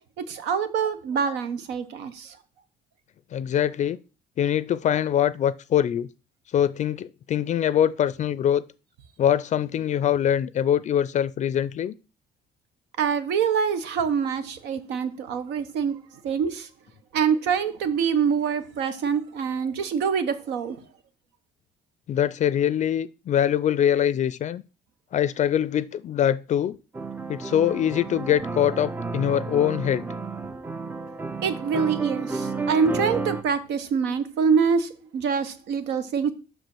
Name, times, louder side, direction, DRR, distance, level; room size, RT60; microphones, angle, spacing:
voice 1, 0.2-2.4 13.0-16.0 16.2-16.7 17.1-20.8 31.4-36.3, right 6 dB, 85° right, 1.1 m, -25 dB
voice 2, 3.3-4.0 4.4-6.1 6.5-8.6 9.2-11.9 22.1-24.6 25.1-26.8 27.3-30.0, left 10 dB, 45° left, 0.4 m, -23 dB
sound 1, 26.9-33.4, right 3 dB, 10° right, 0.5 m, -32 dB
6.0 x 5.1 x 6.1 m
cardioid pair, 110°, 17 cm